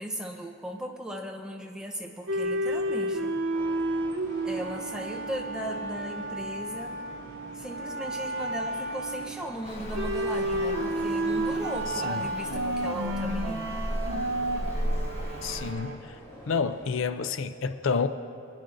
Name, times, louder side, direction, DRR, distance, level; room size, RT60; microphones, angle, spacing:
voice 1, 0.0-3.3 4.4-7.0 7.5-13.7, right 1 dB, 5° right, 2 dB, 0.7 m, -37 dB
sound 1, 2.3-16.0, right 1 dB, 60° right, 0.6 m, -31 dB
sound 2, 3.5-17.0, equal, 15° left, 2.0 m, -49 dB
Traffic noise roadway noise, 9.6-15.7, equal, 30° left, 1.0 m, -35 dB
voice 2, 15.4-16.2 16.5-18.1, left 5 dB, 65° left, 11 dB, 0.4 m, -29 dB
24.0 x 10.0 x 2.6 m, 2.6 s
head